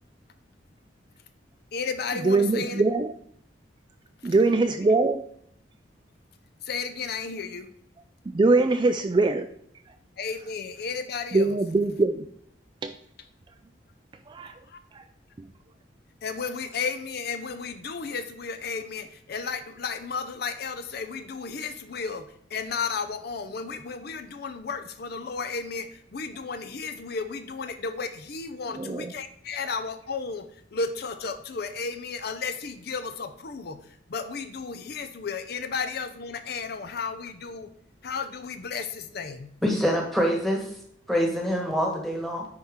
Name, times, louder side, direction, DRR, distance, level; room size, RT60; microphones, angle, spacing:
voice 1, 1.7-2.8 4.2-4.3 4.7-4.8 6.6-7.7 8.8-9.0 10.2-11.6 14.7-14.8 16.2-30.5 30.7-37.7 38.0-39.5, left 5 dB, 55° left, 8 dB, 0.5 m, -33 dB
voice 2, 2.2-3.1 4.2-5.2 8.3-9.5 11.3-12.2 12.8-12.9 14.3-14.5 14.9-15.0 28.7-29.1, right 3 dB, 25° right, 8 dB, 0.3 m, -22 dB
voice 3, 39.6-40.8 41.1-42.5, equal, ahead, 1 dB, 1.4 m, -25 dB
9.7 x 4.3 x 3.6 m, 0.68 s
head